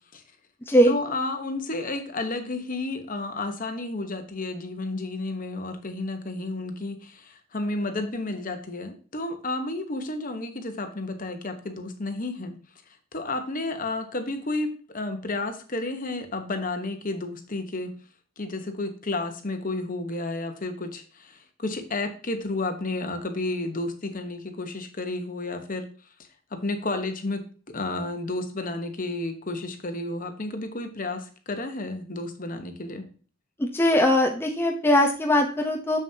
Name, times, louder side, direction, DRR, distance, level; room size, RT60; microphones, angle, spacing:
voice 1, 0.8-12.6 13.1-17.9 18.4-25.9 26.5-33.1, left 2 dB, 40° left, 7 dB, 1.1 m, -31 dB
voice 2, 33.6-36.0, left 1 dB, 10° left, 1 dB, 0.8 m, -21 dB
7.1 x 7.0 x 2.8 m, 0.39 s
head